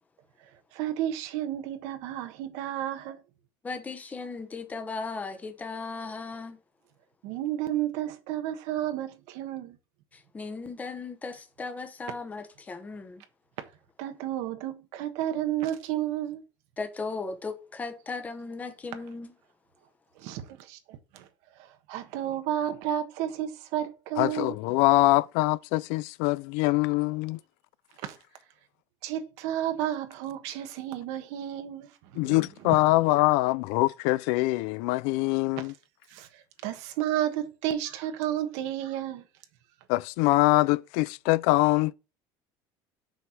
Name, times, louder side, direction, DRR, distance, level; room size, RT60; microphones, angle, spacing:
voice 1, 0.4-3.2 7.2-9.8 14.0-16.4 20.2-21.3 21.6-24.6 28.0-28.2 29.0-32.4 32.6-32.8 36.1-39.2, right 11 dB, 80° right, 1.3 m, -32 dB
voice 2, 3.6-6.6 10.1-13.2 16.8-19.3, left 4 dB, 15° left, 1.0 m, -37 dB
voice 3, 24.2-27.4 32.1-35.7 39.9-41.9, left 20 dB, 90° left, 0.4 m, -24 dB
6.4 x 4.8 x 5.8 m
cardioid pair, 170°, 11 cm